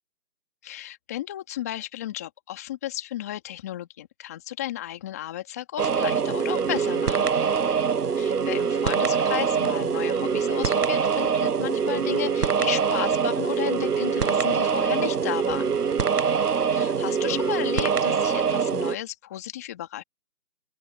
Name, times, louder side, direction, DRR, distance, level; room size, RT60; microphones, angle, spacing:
voice 1, 0.6-7.3 8.2-15.7 16.7-20.0, left 13 dB, 10° left, 2.6 m, -34 dB
sound 1, 5.8-19.0, right 6 dB, 90° right, 1.0 m, -24 dB
open air
figure-of-eight pair, 170°, 45 cm